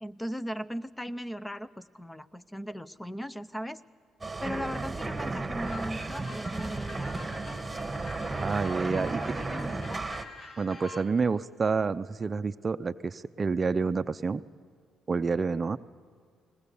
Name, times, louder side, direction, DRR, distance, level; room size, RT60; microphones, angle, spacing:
voice 1, 0.0-3.8 4.4-7.2 8.9-10.0, equal, 10° left, 14 dB, 0.6 m, -38 dB
sound 1, 4.2-10.2, right 3 dB, 15° right, 1.6 m, -34 dB
sound 2, 5.6-11.0, left 2 dB, 40° left, 2.6 m, -45 dB
voice 2, 8.4-9.2 10.6-14.4 15.1-15.8, right 4 dB, 35° right, 12 dB, 0.5 m, -28 dB
20.5 x 20.0 x 7.1 m, 2.1 s
cardioid pair, 90°, 0 cm